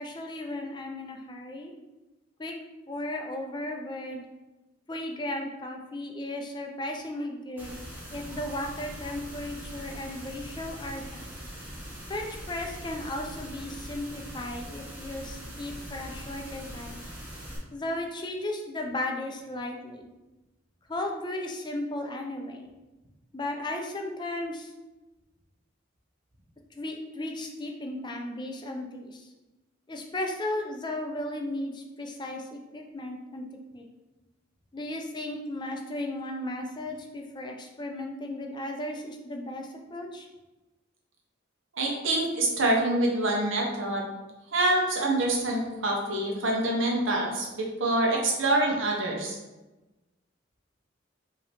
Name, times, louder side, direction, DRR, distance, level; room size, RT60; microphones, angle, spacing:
voice 1, 0.0-1.7 2.4-2.5 2.9-4.2 4.9-7.7 8.1-11.3 12.1-17.0 17.7-20.1 20.9-22.7 23.3-24.7 26.8-29.2 29.9-33.4 33.7-33.9 34.7-40.3, left 1 dB, 25° left, 2 dB, 0.5 m, -35 dB
sound 1, 7.6-17.6, equal, 10° right, 1.0 m, -42 dB
voice 2, 41.8-44.1 44.5-49.4, right 2 dB, 75° right, -1 dB, 1.0 m, -26 dB
5.1 x 2.9 x 3.4 m, 1.1 s
head